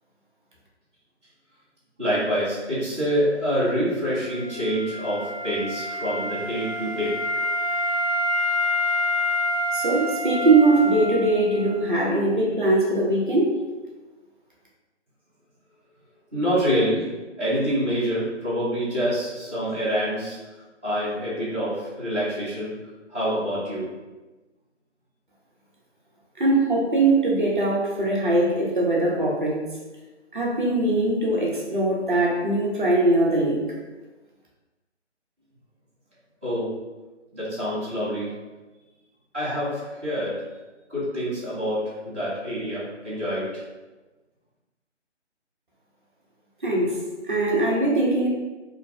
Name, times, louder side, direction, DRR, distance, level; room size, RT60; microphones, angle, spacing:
voice 1, 2.0-7.2 16.3-20.4 20.8-22.8 23.1-23.9 36.4-36.8 37.3-38.3 39.3-40.4 40.9-43.6, equal, 10° right, -18 dB, 0.6 m, -26 dB
Wind instrument woodwind instrument, 4.1-11.9, left 1 dB, 30° left, 0.7 m, -27 dB
voice 2, 9.7-13.5 26.4-29.6 30.3-33.6 46.6-47.0 47.2-48.3, right 2 dB, 45° right, -4 dB, 0.8 m, -21 dB
3.1 x 2.5 x 3.4 m, 1.2 s
figure-of-eight pair, 155°, 36 cm